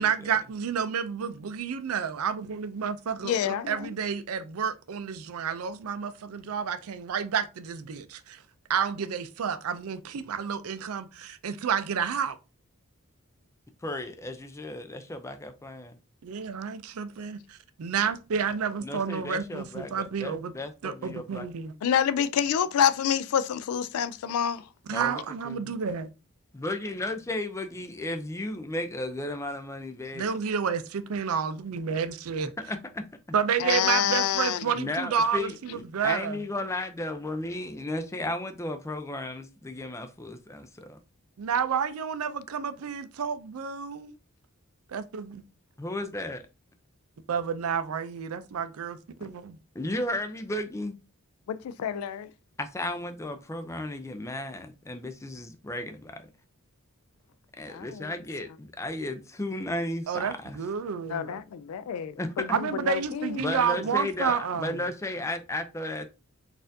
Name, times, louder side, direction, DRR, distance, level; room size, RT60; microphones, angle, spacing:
voice 1, 0.0-8.4 8.7-12.4 16.2-20.5 20.8-21.7 24.9-26.1 30.1-32.5 33.3-36.4 41.4-44.1 44.9-45.4 47.3-49.6 60.1-61.4 62.5-64.8, right 6 dB, 70° right, 0.4 m, -30 dB
voice 2, 3.2-3.9 21.8-24.7 33.6-34.7 51.5-52.3 57.7-58.1 61.1-63.5, left 8 dB, 75° left, 0.3 m, -28 dB
voice 3, 13.8-16.0 18.8-21.5 24.9-25.7 26.5-30.3 32.6-33.0 34.7-41.0 45.8-46.4 49.7-51.0 52.6-56.3 57.6-60.6 62.2-62.5 63.4-66.1, left 1 dB, 15° left, 0.4 m, -34 dB
4.1 x 2.5 x 2.7 m
head